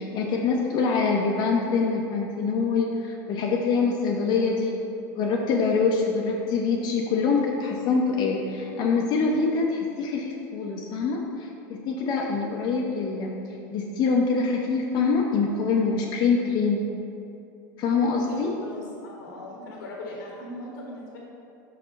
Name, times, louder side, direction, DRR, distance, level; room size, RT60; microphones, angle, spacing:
voice 1, 0.0-4.8 5.2-16.9 17.8-18.5, left 4 dB, 45° left, -1 dB, 0.7 m, -25 dB
voice 2, 18.3-21.2, left 1 dB, 85° left, -2 dB, 1.1 m, -39 dB
5.8 x 5.4 x 4.0 m, 2.7 s
supercardioid pair, 120°, 10 cm